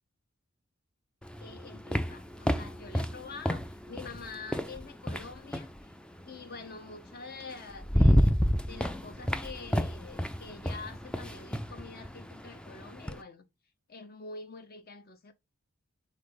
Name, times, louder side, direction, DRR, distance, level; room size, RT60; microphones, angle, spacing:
sound 1, 1.2-5.8 7.1-7.2 7.6-13.2, equal, 5° left, 0.3 m, -29 dB
voice 1, 1.4-5.9 6.2-13.5 13.9-15.3, left 4 dB, 45° left, 0.7 m, -46 dB
4.2 x 3.2 x 3.8 m
head